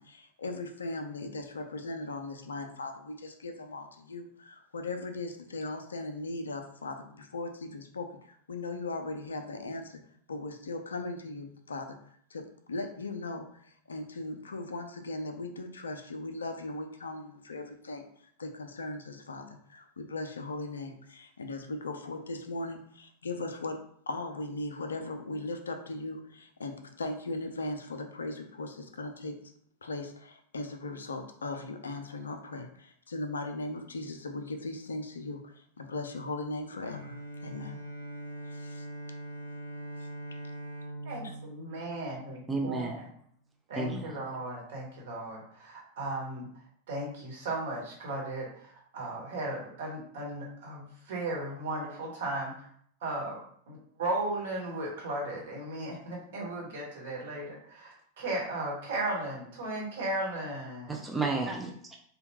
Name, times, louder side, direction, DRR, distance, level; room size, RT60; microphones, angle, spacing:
voice 1, 0.0-10.0 10.3-12.0 12.3-18.0 18.4-23.8 24.1-29.4 29.8-37.2 37.4-37.8 38.5-38.9 40.0-40.1, left 2 dB, 70° left, 0.4 m, -38 dB
Bowed string instrument, 36.8-42.7, right 1 dB, 75° right, 0.4 m, -42 dB
voice 2, 41.0-42.4 42.6-42.9 43.7-46.5 46.9-52.7 53.0-53.4 53.7-61.0, right 2 dB, 60° right, 1.1 m, -36 dB
voice 3, 42.5-43.0 43.7-44.2 60.9-62.0, right 3 dB, 10° right, 0.4 m, -32 dB
3.4 x 2.2 x 2.9 m
figure-of-eight pair, 90°, 0 cm